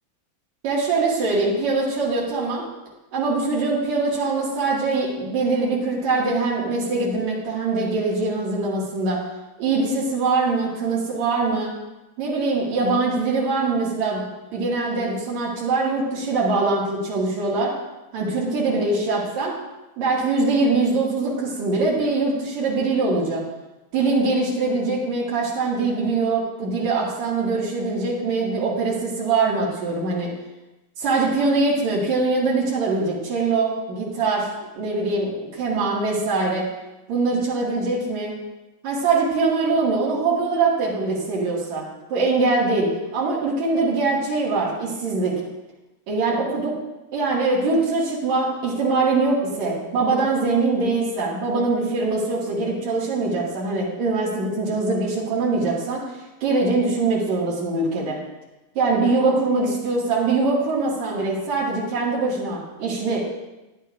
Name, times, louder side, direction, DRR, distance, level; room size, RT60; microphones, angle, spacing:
voice 1, 0.6-2.6 3.1-9.2 9.6-11.7 12.2-14.3 14.5-17.8 18.1-19.5 20.0-23.4 23.9-30.3 31.0-36.7 37.1-38.3 38.8-41.8 42.1-45.3 46.1-46.7 47.1-56.0 56.4-58.2 58.8-63.2, right 3 dB, 70° right, -5 dB, 1.7 m, -23 dB
14.0 x 9.9 x 2.3 m, 1.0 s
omnidirectional pair, 5.7 m